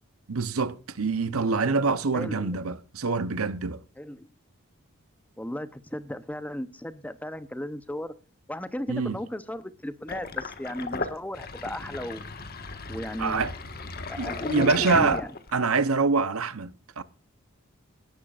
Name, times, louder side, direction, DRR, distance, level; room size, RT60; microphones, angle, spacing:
voice 1, 0.3-3.8 8.9-9.2 13.2-13.5 14.2-15.2 15.5-17.0, right 4 dB, 90° right, 0.9 m, -25 dB
voice 2, 2.1-2.6 4.0-4.3 5.4-8.1 8.5-12.3 12.9-13.5 14.1-15.3, left 1 dB, 5° left, 0.8 m, -35 dB
Sink (filling or washing), 10.1-15.7, left 3 dB, 45° left, 1.6 m, -35 dB
19.0 x 11.5 x 2.5 m
head